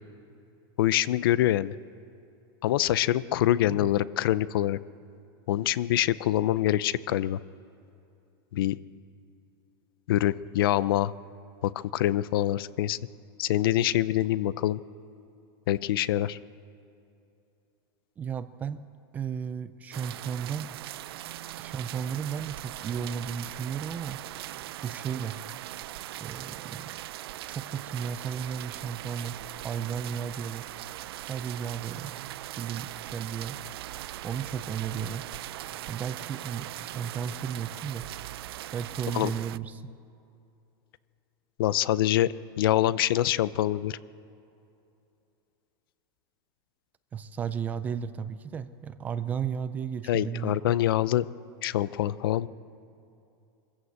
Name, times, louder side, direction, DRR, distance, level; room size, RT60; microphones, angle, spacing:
voice 1, 0.8-1.8 2.6-4.8 5.5-7.4 8.5-8.8 10.1-11.1 11.6-13.0 13.4-14.8 15.7-16.4 39.1-39.3 41.6-44.0 50.1-51.2 51.6-52.5, left 13 dB, 65° left, 18 dB, 0.6 m, -25 dB
voice 2, 18.2-18.8 19.1-20.7 21.6-24.2 24.8-25.4 26.2-26.9 27.5-29.4 29.6-30.7 31.2-32.1 32.6-33.6 34.2-35.3 35.9-38.1 38.7-39.9 47.1-50.7, right 7 dB, 15° right, 13 dB, 0.4 m, -34 dB
sound 1, 19.9-39.6, right 15 dB, 80° right, 0.4 m, -40 dB
23.5 x 14.5 x 8.0 m, 2.7 s
supercardioid pair, 180°, 13 cm